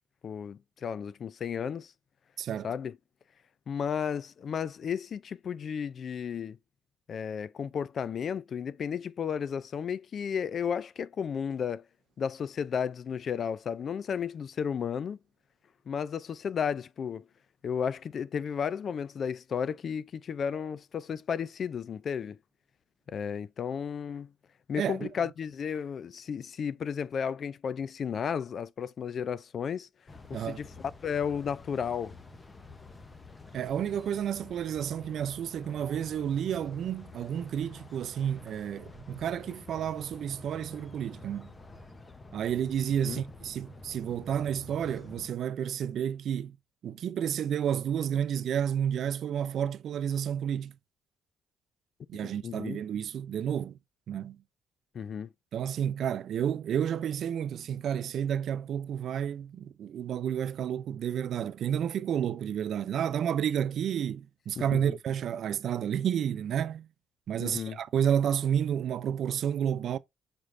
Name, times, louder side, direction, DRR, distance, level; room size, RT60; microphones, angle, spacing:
voice 1, 0.2-1.9 2.6-2.9 3.7-6.6 7.1-11.8 12.2-15.2 15.9-17.3 17.6-22.4 23.1-24.3 24.7-29.9 30.3-32.2 43.0-43.2 52.4-52.8 54.9-55.3 64.6-65.0 67.4-67.8, left 7 dB, 55° left, 0.3 m, -33 dB
voice 2, 2.4-2.7 24.8-25.1 30.3-30.6 33.5-41.5 42.3-46.6 46.8-50.7 52.1-53.8 54.1-54.4 55.5-66.9 67.3-70.0, right 9 dB, 65° right, 0.4 m, -31 dB
sound 1, 30.1-45.3, left 2 dB, 25° left, 0.8 m, -49 dB
6.0 x 3.1 x 2.5 m
cardioid pair, 90°, 0 cm